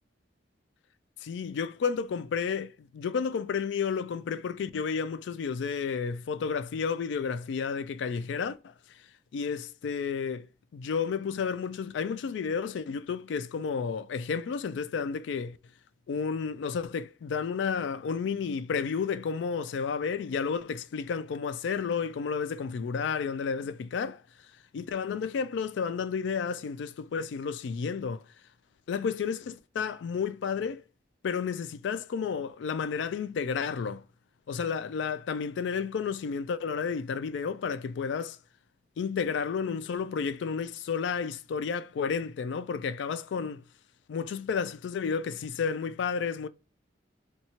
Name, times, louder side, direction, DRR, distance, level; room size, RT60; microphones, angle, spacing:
voice 1, 1.2-8.6 9.3-10.5 10.7-15.6 16.1-24.2 24.7-28.2 28.9-30.8 31.2-34.0 34.5-38.4 39.0-43.6 44.1-46.5, left 6 dB, 70° left, 0.3 m, -31 dB
2.8 x 2.3 x 2.7 m
head